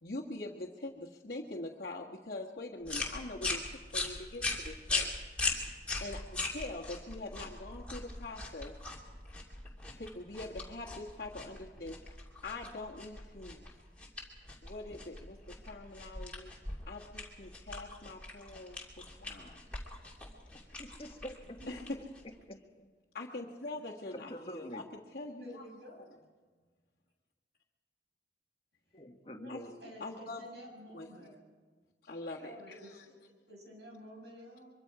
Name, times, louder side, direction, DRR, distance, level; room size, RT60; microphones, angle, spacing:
voice 1, 0.0-3.6 3.9-5.1 6.0-8.7 9.9-12.0 12.4-13.6 14.6-16.5 16.9-19.6 21.7-22.0 23.1-24.8 25.1-25.6 29.5-29.6 30.0-30.4 30.9-31.1 32.0-33.0, left 2 dB, 55° left, -6 dB, 1.7 m, -43 dB
sound 1, 2.8-22.4, left 3 dB, 5° left, 2.8 m, -40 dB
voice 2, 20.8-21.6 22.5-22.9 24.1-24.9 28.9-29.7, equal, 30° left, 2 dB, 1.6 m, -45 dB
voice 3, 25.4-26.0 29.3-29.5 29.8-31.4 32.4-33.1 33.5-34.7, equal, 70° right, 0 dB, 6.7 m, -51 dB
24.0 x 23.5 x 4.9 m, 1.5 s
head